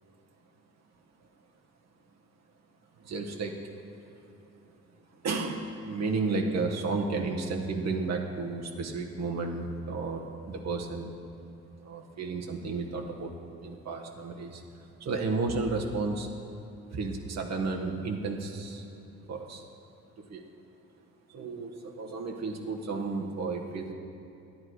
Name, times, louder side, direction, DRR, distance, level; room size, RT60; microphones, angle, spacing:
voice 1, 3.0-3.6 5.2-11.1 11.8-13.3 13.6-14.6 15.0-16.3 16.9-18.8 19.3-19.6 20.2-20.4 21.3-23.9, right 3 dB, 60° right, 1 dB, 1.3 m, -32 dB
10.5 x 9.8 x 4.7 m, 2.7 s
cardioid pair, 90°, 30 cm